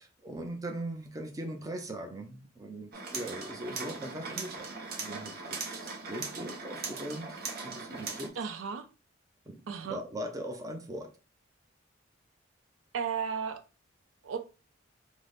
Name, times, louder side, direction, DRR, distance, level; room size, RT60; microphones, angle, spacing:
voice 1, 0.0-4.7 5.0-7.4 7.6-8.3 9.5-11.1, right 1 dB, 20° right, 0.5 m, -40 dB
sound 1, 2.9-8.3, right 4 dB, 50° right, 0.7 m, -39 dB
voice 2, 8.4-8.9 9.7-10.0 12.9-13.6 14.2-14.4, right 6 dB, 85° right, 0.4 m, -34 dB
3.9 x 2.1 x 3.2 m
head